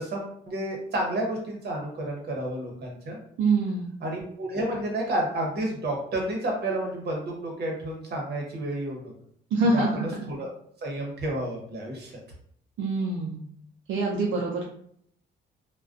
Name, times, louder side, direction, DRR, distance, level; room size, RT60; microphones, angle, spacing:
voice 1, 0.0-3.2 4.0-9.1 9.7-9.8 10.3-10.5 10.8-12.1, right 1 dB, 55° right, 0 dB, 0.9 m, -30 dB
voice 2, 3.4-4.0 9.5-10.3 12.8-13.5 13.9-14.6, right 3 dB, 75° right, -2 dB, 0.5 m, -25 dB
2.3 x 2.2 x 2.4 m, 0.65 s
cardioid pair, 90°, 20 cm